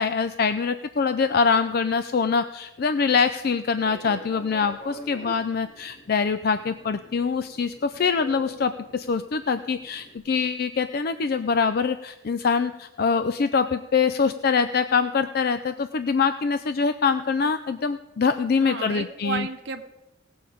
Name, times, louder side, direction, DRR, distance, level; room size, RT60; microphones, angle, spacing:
voice 1, 0.0-19.5, left 5 dB, 45° left, 11 dB, 0.4 m, -24 dB
Fixed-wing aircraft airplane, 3.7-10.2, equal, 70° left, 3.1 m, -44 dB
voice 2, 18.6-19.8, right 5 dB, 55° right, 4 dB, 0.9 m, -32 dB
18.5 x 6.9 x 5.0 m, 0.95 s
head